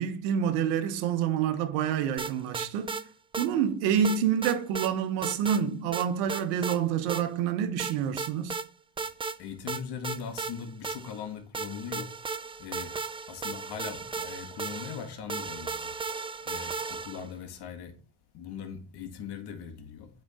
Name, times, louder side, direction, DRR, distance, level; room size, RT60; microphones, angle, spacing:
voice 1, 0.0-3.0 3.4-8.6, right 8 dB, 85° right, 1.2 m, -27 dB
sound 1, 2.2-3.0 3.3-3.5 4.0-4.9 5.2-5.6 5.9-6.8 7.1-7.2 7.8-8.7 9.0-9.4 9.7-11.2 11.5-17.3, right 4 dB, 15° right, 0.4 m, -35 dB
voice 2, 9.4-12.1 12.6-12.9 13.3-16.2 16.4-18.0 18.3-20.1, left 7 dB, 60° left, 1.9 m, -40 dB
8.6 x 4.3 x 4.2 m
supercardioid pair, 75°, 44 cm